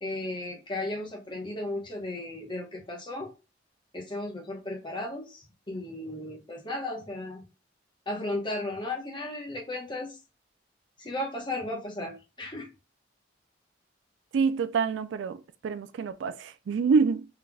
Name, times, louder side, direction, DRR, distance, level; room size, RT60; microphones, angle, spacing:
voice 1, 0.0-3.3 3.9-7.4 8.1-10.2 11.0-12.7, left 2 dB, 25° left, 1.0 m, -35 dB
voice 2, 14.3-17.3, right 5 dB, 90° right, 0.3 m, -26 dB
3.8 x 3.2 x 2.2 m
head